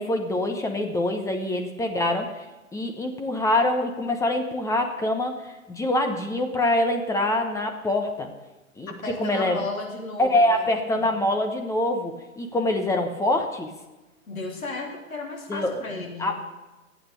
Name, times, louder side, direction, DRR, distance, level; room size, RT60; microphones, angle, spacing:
voice 1, 0.0-2.4 2.7-8.3 8.8-8.9 9.2-9.6 10.2-13.7 15.5-15.8 16.2-16.4, left 1 dB, 5° left, 4 dB, 1.0 m, -25 dB
voice 2, 9.0-10.7 10.9-11.2 14.3-16.4, left 2 dB, 85° left, 0 dB, 3.5 m, -34 dB
14.5 x 8.7 x 6.9 m, 1.1 s
hypercardioid pair, 130°, 41 cm